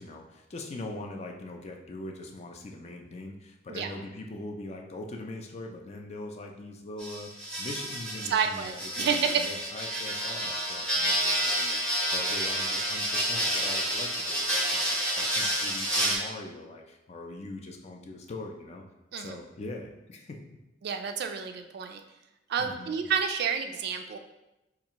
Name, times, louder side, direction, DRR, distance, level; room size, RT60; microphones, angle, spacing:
voice 1, 0.0-18.8 19.2-20.4 22.6-23.0, left 2 dB, 35° left, 2 dB, 0.4 m, -42 dB
sound 1, 7.0-16.2, equal, 5° left, 0.7 m, -29 dB
voice 2, 8.3-9.4 19.1-19.4 20.8-22.0 22.5-24.2, right 6 dB, 55° right, 6 dB, 0.3 m, -29 dB
4.4 x 2.4 x 2.9 m, 0.95 s
head